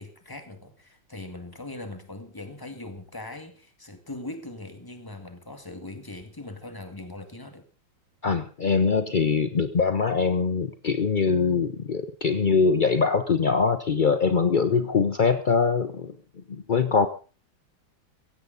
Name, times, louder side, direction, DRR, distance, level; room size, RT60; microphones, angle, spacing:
voice 1, 0.0-7.6, left 2 dB, 10° left, 1.9 m, -40 dB
voice 2, 8.2-16.1 16.5-17.1, left 5 dB, 70° left, 0.4 m, -23 dB
17.0 x 15.5 x 3.9 m
omnidirectional pair, 2.1 m